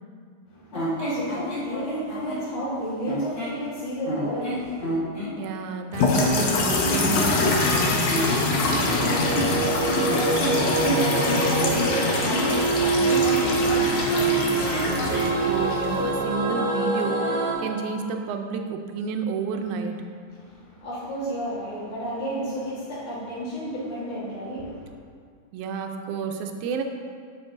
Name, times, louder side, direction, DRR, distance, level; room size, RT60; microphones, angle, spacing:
voice 1, 0.5-4.9 9.4-14.3 20.3-24.9, equal, 85° left, -10 dB, 3.0 m, -32 dB
sound 1, 0.7-2.5 3.0-3.6 4.1-5.3 6.5-7.8 8.1-12.6 13.2-15.4, equal, 40° left, 0.8 m, -30 dB
voice 2, 5.4-8.2 14.5-20.1 25.5-26.8, right 5 dB, 90° right, 5 dB, 2.0 m, -31 dB
sound 2, 5.9-16.1, left 3 dB, 70° left, 1.9 m, -25 dB
sound 3, 8.8-17.5, right 3 dB, 55° right, 1.9 m, -25 dB
9.6 x 7.0 x 2.6 m, 2.1 s
omnidirectional pair, 3.4 m